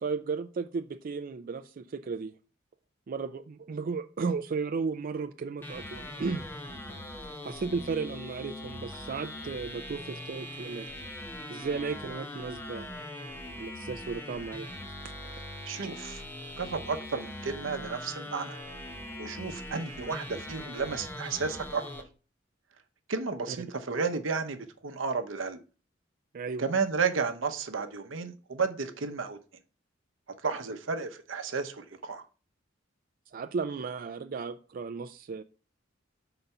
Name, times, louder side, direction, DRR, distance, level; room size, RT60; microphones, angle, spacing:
voice 1, 0.0-2.3 3.1-6.4 7.4-10.9 11.5-12.9 13.6-14.7 15.2-15.4 23.5-23.6 26.3-26.6 33.3-35.4, right 4 dB, 45° right, 0.4 m, -34 dB
sound 1, 5.6-22.0, left 1 dB, 10° left, 0.8 m, -41 dB
voice 2, 15.7-16.2 16.6-18.6 19.2-21.8 23.1-25.6 26.6-29.4 30.4-32.2, right 5 dB, 85° right, 0.8 m, -32 dB
5.5 x 4.0 x 5.8 m
head